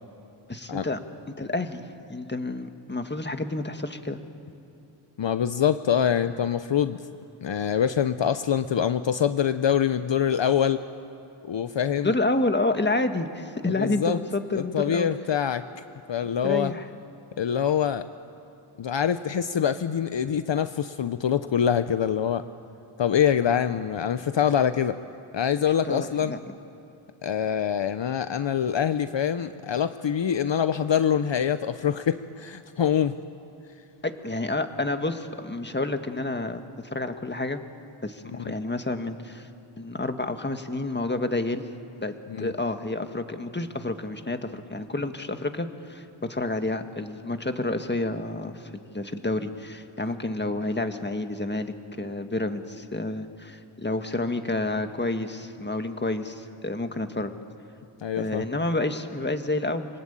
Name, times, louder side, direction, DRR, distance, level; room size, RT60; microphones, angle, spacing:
voice 1, 0.5-1.0 1.4-1.8 2.1-4.2 12.0-15.1 16.4-16.9 25.8-26.4 34.0-37.6 38.0-39.5 39.8-41.7 42.0-57.3 58.2-59.9, left 2 dB, 20° left, 7 dB, 1.7 m, -29 dB
voice 2, 5.2-7.0 7.4-10.8 11.5-12.1 13.7-14.2 14.5-15.6 16.1-16.7 17.4-18.0 18.8-22.5 23.0-25.0 25.3-26.3 27.2-33.1 42.3-42.5 58.0-58.4, left 8 dB, 60° left, 11 dB, 0.8 m, -25 dB
26.5 x 19.0 x 8.9 m, 2.8 s
cardioid pair, 55°, 50 cm